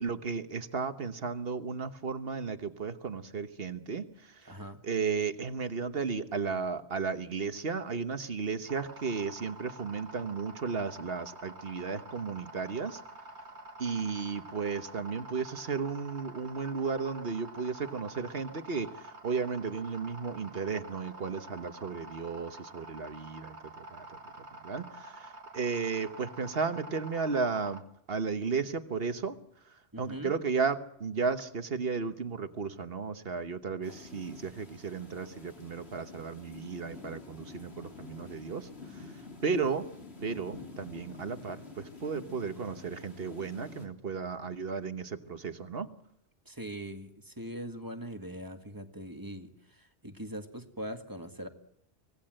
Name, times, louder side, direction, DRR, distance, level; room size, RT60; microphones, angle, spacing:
voice 1, 0.0-4.0 4.8-13.0 13.8-24.0 24.6-27.8 28.1-29.3 30.0-38.7 39.4-39.8 40.2-45.9, right 5 dB, 60° right, 9 dB, 1.4 m, -34 dB
voice 2, 4.4-4.8 29.9-30.4 46.5-51.5, right 1 dB, 20° right, 6 dB, 1.8 m, -41 dB
sound 1, 8.7-27.8, right 2 dB, 85° right, 2.0 m, -48 dB
sound 2, 33.8-43.9, left 4 dB, 70° left, 3.3 m, -49 dB
25.5 x 17.5 x 7.7 m, 0.75 s
omnidirectional pair, 1.1 m